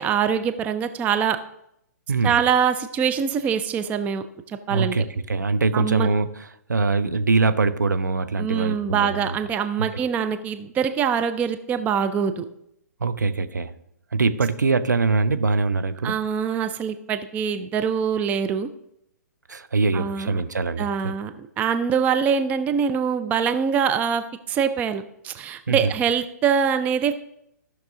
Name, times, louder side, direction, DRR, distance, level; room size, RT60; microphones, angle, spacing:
voice 1, 0.0-1.4 2.2-5.0 5.7-6.1 8.4-12.5 16.0-18.7 19.9-20.3 20.8-27.1, right 7 dB, 15° right, 9 dB, 0.5 m, -24 dB
voice 2, 4.7-6.3 6.7-9.4 9.8-9.9 13.0-13.7 14.1-16.2 19.5-21.1 25.7-25.9, right 4 dB, 75° right, 10 dB, 0.7 m, -23 dB
14.5 x 5.9 x 3.8 m, 0.76 s
figure-of-eight pair, 120°, 10 cm